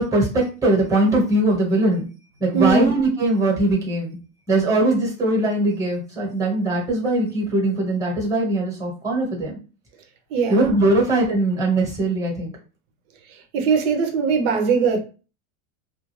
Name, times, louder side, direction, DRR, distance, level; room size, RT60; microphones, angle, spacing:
voice 1, 0.0-2.1 2.4-4.2 4.5-9.6 10.5-12.5, right 2 dB, 10° right, 1.0 m, -21 dB
voice 2, 2.5-2.9 10.3-10.7 13.5-15.0, right 5 dB, 65° right, 0.9 m, -20 dB
2.4 x 2.2 x 3.1 m
supercardioid pair, 115°, 42 cm